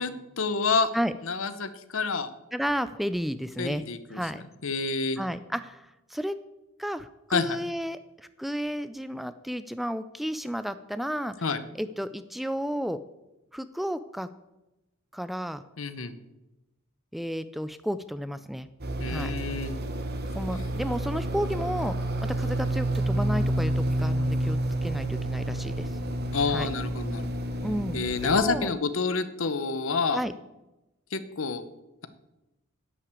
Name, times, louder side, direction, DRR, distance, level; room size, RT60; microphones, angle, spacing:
voice 1, 0.0-0.9 1.2-2.3 3.6-4.2 4.6-5.2 7.3-7.6 11.4-11.6 15.8-16.2 19.0-19.7 26.3-27.2 27.9-30.2 31.1-31.6, left 4 dB, 70° left, 12 dB, 0.9 m, -28 dB
voice 2, 2.5-3.8 4.1-4.4 5.2-6.4 6.8-11.3 11.7-13.0 13.5-14.3 15.1-15.6 17.1-18.7 19.1-19.3 20.3-21.9 22.2-25.9 26.5-26.7 27.6-28.7 30.1-30.3, equal, ahead, 13 dB, 0.3 m, -32 dB
sound 1, 18.8-28.4, right 1 dB, 50° right, 1.2 m, -29 dB
11.0 x 6.0 x 8.3 m, 0.97 s
head